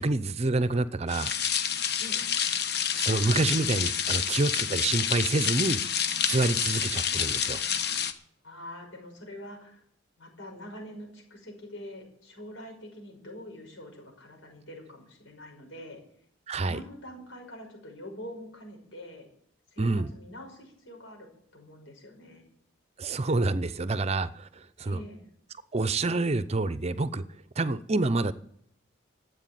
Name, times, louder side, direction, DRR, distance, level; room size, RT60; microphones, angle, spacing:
voice 1, 0.0-1.3 2.9-5.8 6.1-7.6 16.5-16.8 19.8-20.1 23.0-25.0 25.7-27.2 27.6-28.3, right 3 dB, 30° right, 15 dB, 0.6 m, -27 dB
sound 1, 1.1-8.1, left 8 dB, 55° left, 1.1 m, -28 dB
voice 2, 8.4-9.8 10.2-16.0 16.6-19.3 19.7-21.3 21.5-22.4 24.8-25.2, left 1 dB, 85° left, 2 dB, 6.1 m, -45 dB
13.0 x 8.3 x 9.1 m, 0.66 s
head